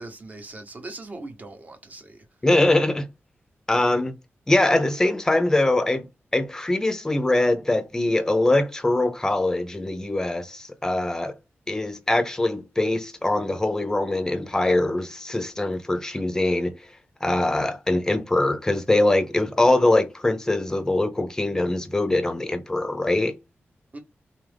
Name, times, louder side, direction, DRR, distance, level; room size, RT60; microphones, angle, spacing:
voice 1, 0.0-2.2 23.9-24.0, right 2 dB, 35° right, 0.9 m, -40 dB
voice 2, 2.4-3.1 3.7-4.1 4.5-6.1 6.3-11.3 11.7-16.8 17.2-23.3, left 2 dB, 10° left, 0.5 m, -22 dB
3.9 x 2.4 x 3.3 m
wide cardioid pair, 150°, 5 cm